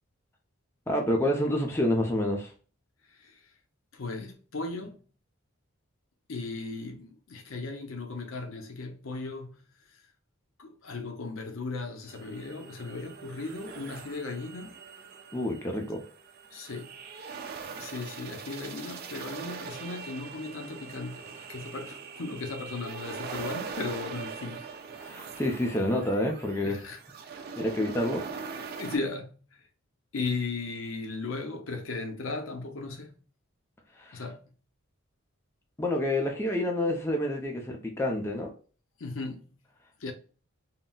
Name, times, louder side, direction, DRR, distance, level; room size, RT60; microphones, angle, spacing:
voice 1, 0.9-2.5 15.3-16.0 25.0-26.8 27.6-28.3 33.9-34.2 35.8-38.5, left 1 dB, 10° left, 0.4 m, -28 dB
voice 2, 3.1-3.4 3.9-5.0 6.3-9.6 10.6-14.7 16.5-16.9 17.8-24.6 26.6-27.0 27.4-27.5 28.8-29.6 30.1-33.2 34.1-34.4 39.0-39.5 40.0-40.1, left 3 dB, 70° left, 0.6 m, -36 dB
sound 1, 12.1-29.0, right 5 dB, 45° right, 0.4 m, -42 dB
3.8 x 2.0 x 2.2 m
head